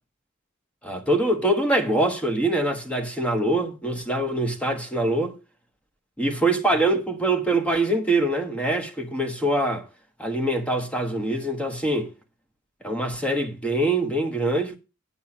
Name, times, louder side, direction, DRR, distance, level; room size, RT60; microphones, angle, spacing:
voice 1, 0.8-5.4 6.2-9.9 10.2-12.1 12.8-14.8, right 1 dB, 5° left, 1.2 m, -24 dB
9.3 x 5.5 x 5.9 m
head